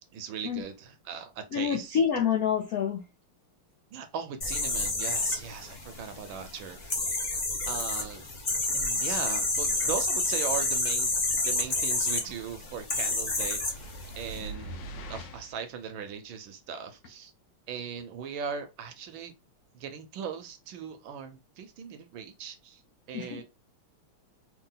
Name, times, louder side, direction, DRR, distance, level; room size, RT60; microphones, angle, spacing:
voice 1, 0.1-2.0 3.9-7.2 7.7-8.2 8.7-11.1 11.4-13.7 14.1-14.8 15.1-17.3 17.7-19.3 19.7-22.8 23.1-23.4, right 7 dB, 70° right, 1.3 m, -39 dB
voice 2, 1.5-3.0 23.1-23.4, left 8 dB, 90° left, 0.7 m, -27 dB
sound 1, 4.4-14.4, left 2 dB, 50° left, 0.5 m, -30 dB
sound 2, 13.1-15.7, right 1 dB, 65° left, 1.2 m, -43 dB
3.6 x 2.6 x 3.8 m
omnidirectional pair, 2.4 m